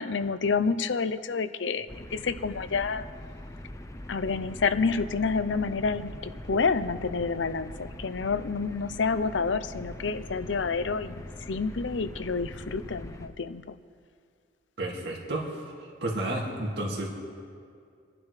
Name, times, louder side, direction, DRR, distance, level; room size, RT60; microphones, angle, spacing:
voice 1, 0.0-3.1 4.1-13.6, left 4 dB, 85° left, 12 dB, 0.6 m, -29 dB
sound 1, 1.9-13.3, left 1 dB, 15° left, 0.7 m, -42 dB
voice 2, 14.8-17.1, right 1 dB, 65° right, -2 dB, 2.3 m, -32 dB
28.0 x 10.5 x 3.3 m, 2.2 s
head